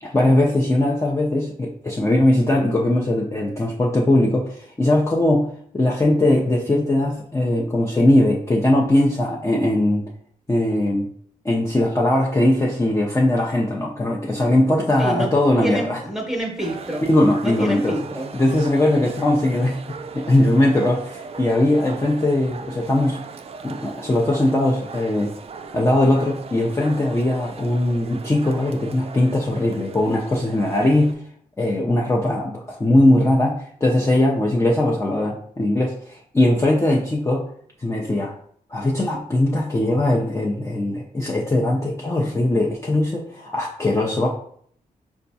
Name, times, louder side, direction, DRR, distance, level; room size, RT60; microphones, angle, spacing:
voice 1, 0.0-10.1 10.5-11.1 11.4-16.0 17.1-18.0 18.3-23.2 23.6-25.3 25.7-31.2 31.6-37.4 37.8-38.3 38.7-44.3, left 1 dB, 20° left, -3 dB, 0.6 m, -20 dB
voice 2, 15.0-17.0 17.4-18.3, right 1 dB, 5° right, 0 dB, 1.0 m, -28 dB
sound 1, 16.6-31.1, right 5 dB, 40° right, 0.4 m, -38 dB
4.2 x 2.3 x 2.7 m, 0.62 s
cardioid pair, 55°, 16 cm